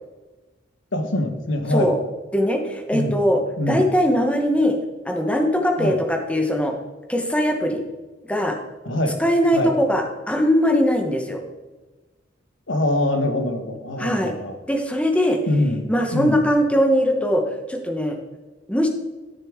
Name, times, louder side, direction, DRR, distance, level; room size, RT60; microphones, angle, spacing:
voice 1, 0.9-2.0 2.9-3.2 3.6-3.8 5.8-6.0 8.8-9.2 9.5-9.7 12.7-14.5 15.5-15.8 16.1-16.4, left 1 dB, 75° left, 6 dB, 1.1 m, -23 dB
voice 2, 2.3-3.4 3.7-4.8 5.0-6.7 7.1-7.8 8.3-8.6 9.2-11.4 14.0-14.3 14.7-15.4 15.9-17.4 17.7-18.2 18.7-18.9, equal, 5° left, 3 dB, 1.1 m, -20 dB
12.5 x 6.7 x 3.7 m, 1.2 s
head